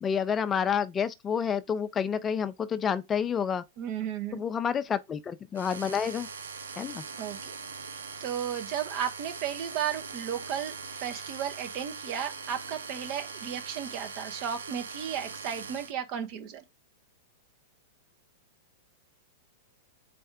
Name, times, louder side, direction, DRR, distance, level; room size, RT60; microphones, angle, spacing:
voice 1, 0.0-3.6 4.3-6.3 6.8-7.0, left 7 dB, 25° left, 0.4 m, -29 dB
voice 2, 3.8-4.5 7.2-7.6 8.2-10.7 11.0-16.6, right 9 dB, 45° right, 0.9 m, -34 dB
sound 1, 5.5-15.9, right 5 dB, 85° right, 0.6 m, -41 dB
4.3 x 3.3 x 3.5 m
hypercardioid pair, 115°, 0 cm